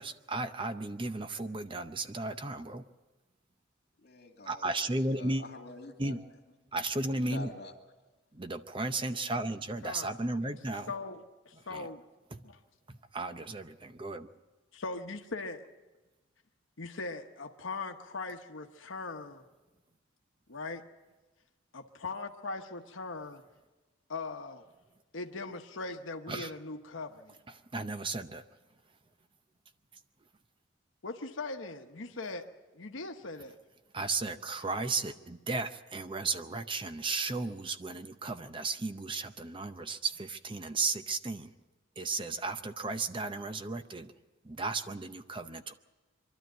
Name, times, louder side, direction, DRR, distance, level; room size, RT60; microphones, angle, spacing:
voice 1, 0.0-2.8 4.5-5.4 6.0-6.2 6.7-7.5 8.3-10.9 11.7-11.9 13.1-14.3 26.3-26.5 27.7-28.4 33.9-41.5 42.0-44.1 44.5-45.7, right 3 dB, 25° right, 9 dB, 0.7 m, -34 dB
voice 2, 4.0-6.2 7.2-7.7, left 2 dB, 55° left, 2 dB, 2.3 m, -47 dB
voice 3, 10.9-12.0 12.4-12.6 14.7-15.7 16.8-19.4 20.5-20.8 21.7-23.4 24.1-24.6 25.1-27.4 31.0-32.5 32.7-33.5, left 3 dB, 75° left, 5 dB, 1.0 m, -40 dB
24.0 x 12.5 x 9.2 m, 1.2 s
head